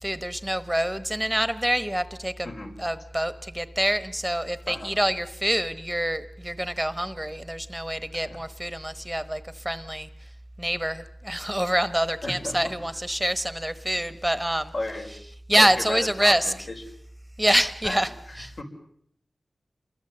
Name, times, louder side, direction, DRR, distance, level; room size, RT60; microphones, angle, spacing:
voice 1, 0.0-2.5 2.8-10.1 10.6-14.7 15.5-16.5 17.4-18.1 18.4-18.5, right 1 dB, 5° right, 13 dB, 1.2 m, -26 dB
voice 2, 4.7-5.0 8.1-8.4 12.2-12.7 14.7-15.1 15.6-16.6 17.8-18.6, left 2 dB, 65° left, 2 dB, 5.5 m, -34 dB
28.5 x 23.0 x 8.0 m, 0.67 s
wide cardioid pair, 85°, 0 cm